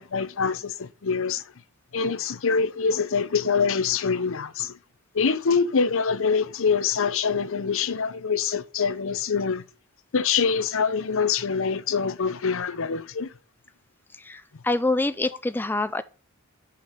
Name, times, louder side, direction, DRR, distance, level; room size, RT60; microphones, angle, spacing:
voice 1, 0.0-1.4 1.9-4.8 5.1-9.6 10.1-13.3, left 5 dB, 65° left, 0.7 m, -25 dB
voice 2, 14.2-16.0, left 2 dB, 10° left, 0.3 m, -26 dB
6.3 x 6.0 x 7.3 m
head